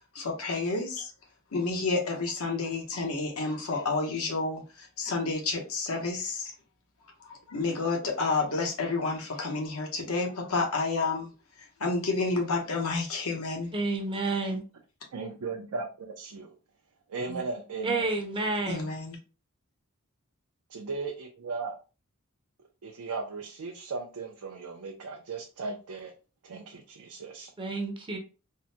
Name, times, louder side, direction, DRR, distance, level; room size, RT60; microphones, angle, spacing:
voice 1, 0.1-1.1 1.5-6.5 7.2-11.3 11.6-13.7 17.3-17.4 18.7-19.2, left 3 dB, 70° left, 1 dB, 0.9 m, -30 dB
voice 2, 13.7-14.6 17.8-18.9 27.6-28.2, right 3 dB, 25° right, 3 dB, 0.5 m, -30 dB
voice 3, 15.1-16.6 17.1-18.1 20.7-21.7 22.8-26.1 26.4-27.5, right 4 dB, 80° right, 1 dB, 0.5 m, -37 dB
3.6 x 2.1 x 2.7 m, 0.33 s
head